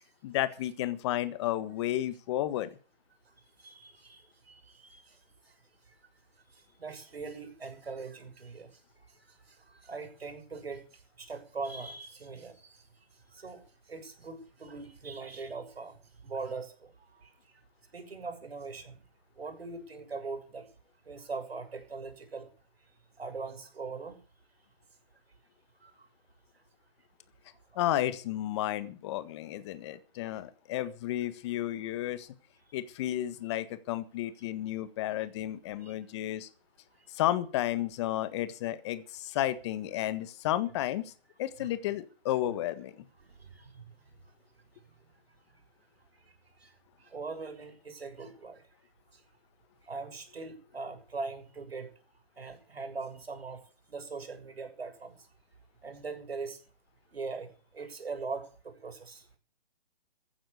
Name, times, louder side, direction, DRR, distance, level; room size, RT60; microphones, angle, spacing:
voice 1, 0.2-2.8 27.7-32.3 32.7-36.5 37.1-41.1 41.4-43.0, left 13 dB, 30° left, 13 dB, 1.5 m, -32 dB
voice 2, 3.6-5.2 6.5-8.7 9.4-12.8 13.3-13.6 13.9-17.3 17.9-19.0 19.4-20.7 21.0-22.5 23.2-24.2 25.8-26.0 35.8-35.9 41.6-41.7 43.2-43.7 44.1-44.2 46.6-46.7 47.0-48.6 49.8-51.9 52.4-53.6 53.9-55.1 55.8-56.6 57.1-57.5 57.7-59.2, right 4 dB, 80° right, 6 dB, 6.8 m, -41 dB
15.5 x 9.6 x 8.5 m, 0.39 s
hypercardioid pair, 150°, 30 cm